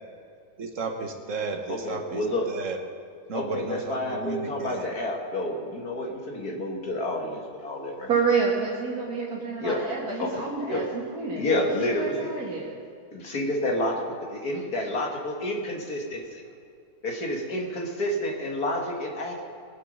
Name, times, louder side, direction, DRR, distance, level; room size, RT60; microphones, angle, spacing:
voice 1, 0.6-2.8 3.3-4.9, right 4 dB, 55° right, 4 dB, 1.7 m, -33 dB
voice 2, 1.7-2.5 3.3-8.1 9.6-9.8 10.2-10.8 11.4-12.3 13.1-14.0 14.4-16.4 17.0-19.4, left 1 dB, 75° left, 0 dB, 2.5 m, -29 dB
voice 3, 8.1-11.6 11.9-12.8, right 5 dB, 75° right, -6 dB, 2.5 m, -28 dB
21.0 x 8.4 x 5.5 m, 2.4 s
omnidirectional pair, 1.6 m